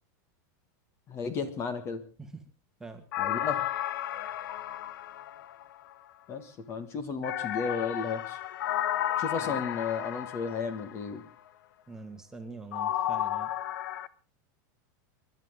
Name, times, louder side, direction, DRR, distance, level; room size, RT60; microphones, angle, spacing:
voice 1, 1.1-2.0 3.2-3.7 6.3-8.4 9.2-11.2, left 5 dB, 25° left, 11 dB, 1.7 m, -34 dB
sound 1, 3.1-5.9 7.2-11.1 12.7-14.1, left 12 dB, 80° left, 1.1 m, -33 dB
voice 2, 11.9-13.5, right 3 dB, 5° right, 4 dB, 1.8 m, -44 dB
29.0 x 12.0 x 3.7 m, 0.35 s
supercardioid pair, 170°, 11 cm